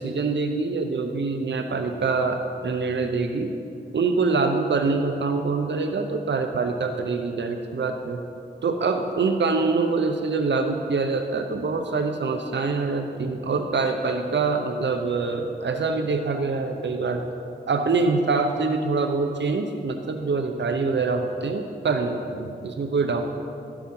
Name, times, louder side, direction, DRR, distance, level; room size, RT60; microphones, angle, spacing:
voice 1, 0.0-3.5 3.9-8.2 8.6-17.2 17.7-23.2, right 4 dB, 80° right, 5 dB, 0.7 m, -25 dB
12.5 x 7.0 x 5.4 m, 2.5 s
wide cardioid pair, 75°, 18 cm